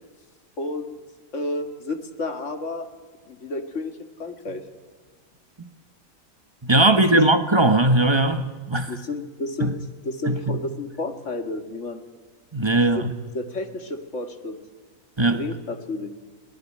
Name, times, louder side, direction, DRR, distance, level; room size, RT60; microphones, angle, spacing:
voice 1, 0.6-1.0 1.3-2.9 3.3-4.6 6.9-7.3 8.9-9.7 10.0-12.0 12.7-13.1 13.3-14.6 15.3-16.1, left 2 dB, 50° left, 2.3 m, -31 dB
voice 2, 6.6-8.9 9.6-9.7 10.3-10.6 12.5-13.1 15.2-15.4, right 2 dB, 20° right, 1.1 m, -19 dB
24.0 x 17.5 x 9.9 m
omnidirectional pair, 1.7 m